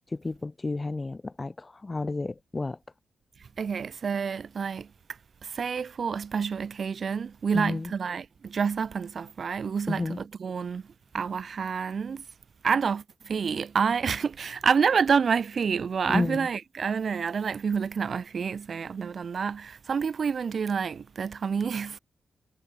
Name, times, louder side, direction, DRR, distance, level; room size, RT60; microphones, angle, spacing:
voice 1, 0.1-2.8 7.5-7.9 9.9-10.2 16.1-16.5, left 3 dB, 35° left, 6.1 m, -31 dB
voice 2, 3.6-4.9 5.4-10.8 11.1-12.2 12.6-22.0, right 6 dB, 65° right, 4.6 m, -28 dB
cardioid pair, 50°, 0 cm